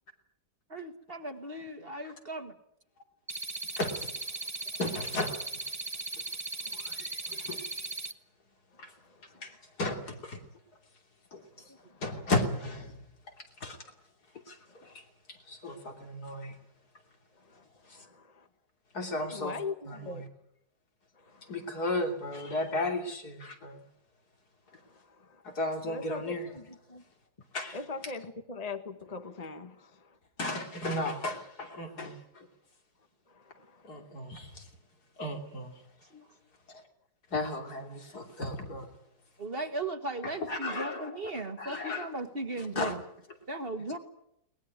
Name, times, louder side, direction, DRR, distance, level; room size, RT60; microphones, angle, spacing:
voice 1, 0.7-2.5 11.7-11.8 36.1-36.3 39.4-43.0 43.5-44.0, right 2 dB, 35° right, 1.9 m, -37 dB
sound 1, 3.3-8.1, right 3 dB, 15° right, 0.7 m, -38 dB
voice 2, 3.7-4.1 4.8-5.5 6.7-7.9 8.8-8.9 9.4-10.4 11.3-11.4 12.0-13.0 13.4-13.8 14.3-15.0 15.3-16.6 18.9-19.6 19.9-20.3 21.5-23.8 25.4-26.5 27.5-27.8 28.0-28.1 30.4-32.5 33.8-34.7 35.2-35.7 37.3-38.9 40.2-42.1 42.6-42.9, left 2 dB, 75° left, 3.5 m, -35 dB
voice 3, 8.7-9.6 11.5-12.0 14.7-14.9 15.8-15.9 17.4-17.9 19.3-20.2 21.1-21.6 24.7-25.4 25.8-27.0 27.7-30.2 33.3-34.1, left 4 dB, 25° left, 1.2 m, -43 dB
22.0 x 19.5 x 9.5 m
omnidirectional pair, 1.7 m